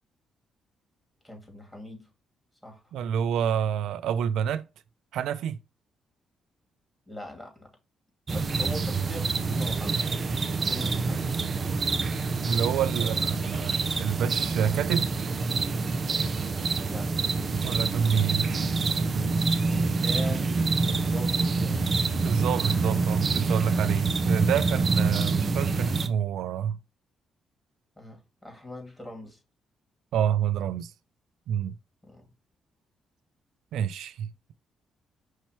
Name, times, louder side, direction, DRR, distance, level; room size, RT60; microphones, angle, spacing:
voice 1, 1.2-2.1 2.6-2.8 7.1-7.7 8.3-10.1 10.7-11.4 13.0-13.7 16.8-17.2 19.6-21.9 28.0-29.4 32.0-32.3, left 1 dB, 10° left, 2.4 m, -42 dB
voice 2, 2.9-4.7 5.1-5.6 12.4-15.2 17.6-18.5 22.2-26.8 30.1-30.9 31.5-31.8 33.7-34.5, right 8 dB, 80° right, 0.3 m, -28 dB
sound 1, 8.3-26.1, right 4 dB, 45° right, 0.7 m, -26 dB
5.5 x 3.0 x 2.9 m
cardioid pair, 70°, 0 cm